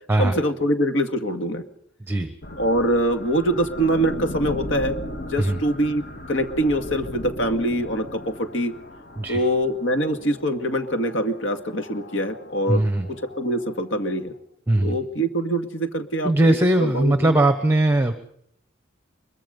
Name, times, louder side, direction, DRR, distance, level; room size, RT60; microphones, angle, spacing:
voice 1, 0.2-1.6 2.6-8.7 9.3-12.8 13.1-14.3 14.8-16.3 16.8-17.4, right 1 dB, 65° left, 7 dB, 2.1 m, -24 dB
voice 2, 2.0-2.3 5.4-5.6 9.2-9.4 12.7-13.1 14.7-15.0 16.2-18.1, right 1 dB, 10° right, 9 dB, 1.1 m, -20 dB
sound 1, 2.4-14.4, left 1 dB, 45° left, 2.0 m, -38 dB
23.5 x 22.5 x 5.4 m, 0.72 s
head